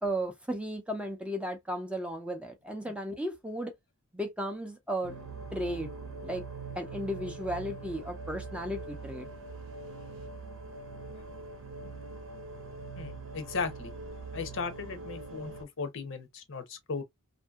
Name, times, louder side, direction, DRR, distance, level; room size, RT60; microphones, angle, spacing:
voice 1, 0.0-3.7 4.1-5.1 5.5-5.9 6.2-6.4 6.7-9.3, equal, 5° right, 0.5 m, -35 dB
sound 1, 5.0-15.6, right 3 dB, 70° right, 0.9 m, -43 dB
voice 2, 13.0-13.9 14.3-15.5 15.8-17.0, left 4 dB, 60° left, 0.7 m, -36 dB
2.6 x 2.6 x 2.3 m
head